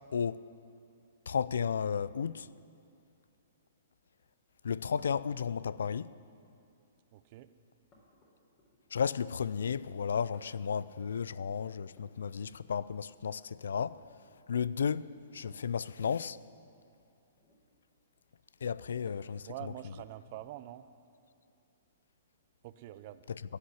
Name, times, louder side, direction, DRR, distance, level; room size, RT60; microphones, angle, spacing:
voice 1, 0.1-0.4 1.3-2.5 4.6-6.1 8.9-14.0 14.5-15.1 15.3-16.4 18.6-19.7 23.3-23.4, left 7 dB, 80° left, 0.3 m, -33 dB
sound 1, 5.0-5.3 6.4-6.9 7.9-9.0 10.3-10.8 11.9-13.0 13.6-14.0 15.4-15.7 17.3-17.7 19.0-19.5 20.9-21.0 22.2-22.3, left 1 dB, 30° left, 3.7 m, -63 dB
voice 2, 7.1-7.5 19.5-20.9 22.6-23.2, right 14 dB, 45° right, 0.6 m, -45 dB
16.0 x 6.5 x 9.8 m
hypercardioid pair, 130°, 0 cm